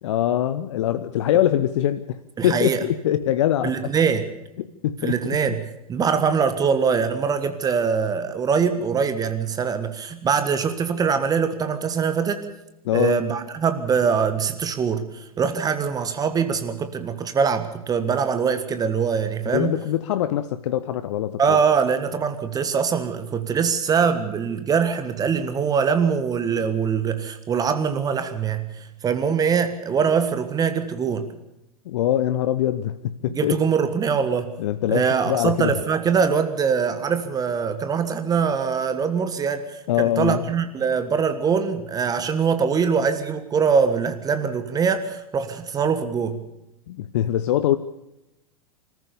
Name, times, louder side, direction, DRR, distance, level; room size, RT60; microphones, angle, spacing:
voice 1, 0.0-3.9 4.6-5.4 12.8-13.2 19.5-21.6 31.8-33.6 34.6-35.8 39.9-40.5 46.9-47.8, left 12 dB, 55° left, 12 dB, 0.9 m, -23 dB
voice 2, 2.4-2.8 3.6-4.3 5.0-12.5 12.9-19.8 21.4-31.3 33.3-34.5 34.9-46.4, right 6 dB, 20° right, 9 dB, 1.6 m, -23 dB
26.5 x 14.5 x 7.0 m, 0.89 s
figure-of-eight pair, 95°, 18 cm